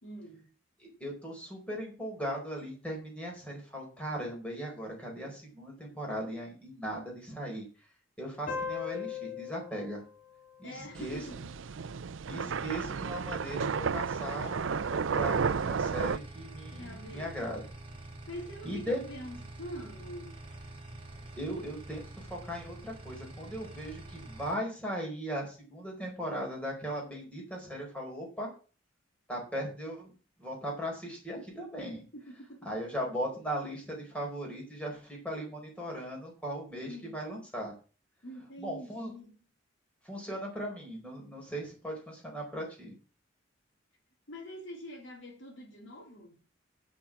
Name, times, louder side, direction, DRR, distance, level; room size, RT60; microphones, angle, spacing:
voice 1, 0.0-0.5 10.6-11.5 16.7-17.4 18.3-20.4 32.1-32.7 36.8-37.1 38.2-39.4 44.3-46.4, equal, 70° left, 3.8 m, -45 dB
voice 2, 0.8-7.6 8.2-10.0 10.6-11.2 12.3-17.6 18.6-19.0 21.4-28.5 29.3-30.1 30.4-32.0 32.6-37.7 38.6-39.1 40.0-42.9, equal, 5° left, 4.5 m, -38 dB
sound 1, 8.5-11.6, left 6 dB, 40° left, 2.9 m, -40 dB
sound 2, 11.0-16.2, right 5 dB, 80° right, 0.5 m, -32 dB
sound 3, 15.2-24.6, right 2 dB, 30° right, 4.1 m, -47 dB
10.5 x 6.2 x 7.4 m
head